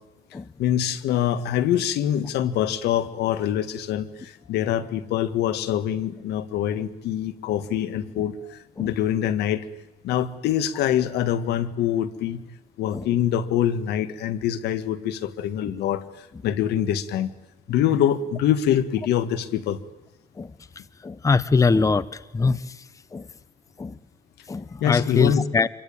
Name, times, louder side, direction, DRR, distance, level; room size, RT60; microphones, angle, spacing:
voice 1, 0.6-9.7 10.0-12.4 12.8-17.3 17.7-19.8 24.8-25.4, left 10 dB, 80° left, 12 dB, 1.9 m, -24 dB
voice 2, 21.0-22.0 22.3-22.6 23.1-23.2 23.8-23.9 24.5-25.7, left 4 dB, 20° left, 17 dB, 0.9 m, -22 dB
27.0 x 23.5 x 8.8 m, 0.97 s
cardioid pair, 110°, 17 cm